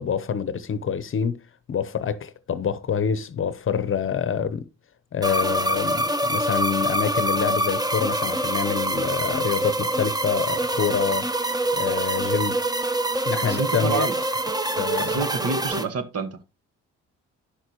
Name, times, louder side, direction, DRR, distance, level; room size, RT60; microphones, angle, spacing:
voice 1, 0.0-1.4 1.7-4.7 5.1-11.3 11.7-12.6 13.2-14.1 14.8-15.2, left 7 dB, 45° left, 0.8 m, -26 dB
sound 1, 5.2-15.8, right 1 dB, 15° right, 0.9 m, -25 dB
voice 2, 13.4-14.1 15.0-16.4, right 4 dB, 55° right, 1.4 m, -28 dB
10.0 x 6.4 x 3.0 m
cardioid pair, 90°, 30 cm